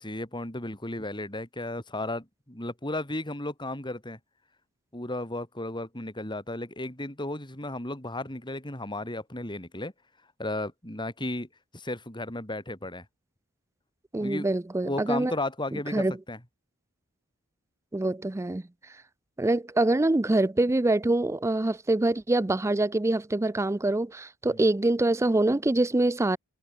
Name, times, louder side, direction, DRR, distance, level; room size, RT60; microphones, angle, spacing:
voice 1, 0.0-4.2 4.9-9.9 10.4-11.5 11.7-13.0 14.1-14.5 14.8-16.4 24.5-24.6, left 1 dB, 20° left, 4.6 m, -34 dB
voice 2, 14.1-15.3 15.7-16.1 17.9-18.6 19.4-26.4, right 2 dB, 15° right, 0.4 m, -25 dB
head